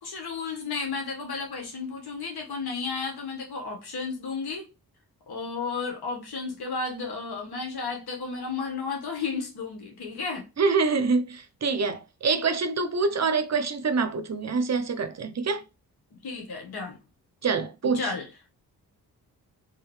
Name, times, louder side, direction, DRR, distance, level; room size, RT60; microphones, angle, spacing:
voice 1, 0.0-4.6 5.3-10.5 13.1-13.2 16.1-17.0 17.8-18.3, left 4 dB, 75° left, 1.5 m, -33 dB
voice 2, 10.6-15.6 17.4-18.1, right 4 dB, 45° right, 0.7 m, -26 dB
3.5 x 3.1 x 3.1 m
supercardioid pair, 50°, 39 cm